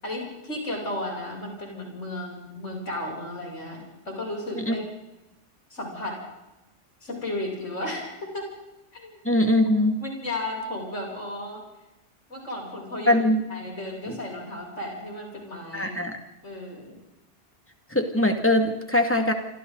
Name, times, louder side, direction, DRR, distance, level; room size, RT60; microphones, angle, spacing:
voice 1, 0.0-4.8 5.7-6.2 7.0-8.5 8.9-9.2 10.0-11.6 12.3-13.2 13.5-16.0 16.4-17.0, left 1 dB, 85° left, -1 dB, 8.3 m, -34 dB
voice 2, 9.2-10.0 13.1-13.4 14.1-14.2 15.7-16.1 17.9-19.3, left 1 dB, 10° left, 4 dB, 2.4 m, -22 dB
27.5 x 25.5 x 4.1 m, 0.96 s
omnidirectional pair, 1.2 m